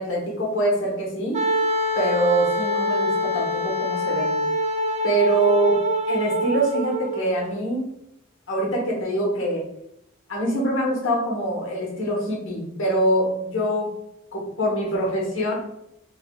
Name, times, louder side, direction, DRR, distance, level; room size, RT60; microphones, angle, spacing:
voice 1, 0.0-1.4 1.9-4.4 5.0-7.9 8.5-9.7 10.3-13.9 14.3-15.6, right 1 dB, 75° left, -2 dB, 1.2 m, -24 dB
Wind instrument woodwind instrument, 1.3-7.3, left 1 dB, 35° right, 0.4 m, -25 dB
3.4 x 3.3 x 2.4 m, 0.79 s
head